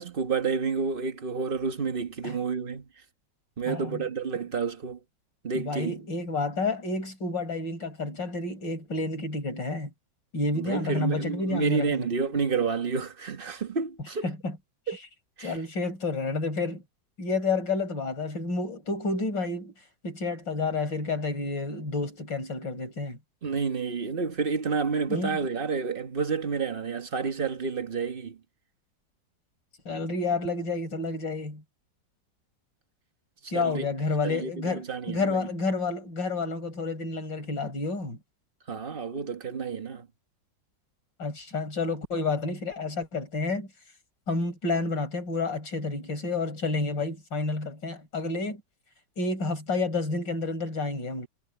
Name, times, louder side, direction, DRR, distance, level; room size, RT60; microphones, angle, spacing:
voice 1, 0.0-2.9 3.6-5.0 5.4-6.0 10.5-14.3 14.9-15.0 15.4-15.6 23.4-28.4 33.4-33.9 34.2-35.5 38.7-40.1, right 5 dB, 30° right, 1.4 m, -30 dB
voice 2, 3.7-4.0 5.5-9.9 10.3-12.1 14.2-14.6 15.4-16.8 17.2-19.7 20.0-23.2 25.1-25.4 29.9-31.6 33.5-38.2 41.2-43.7 44.3-48.6 49.2-51.3, left 3 dB, 75° left, 5.7 m, -30 dB
omnidirectional pair, 2.0 m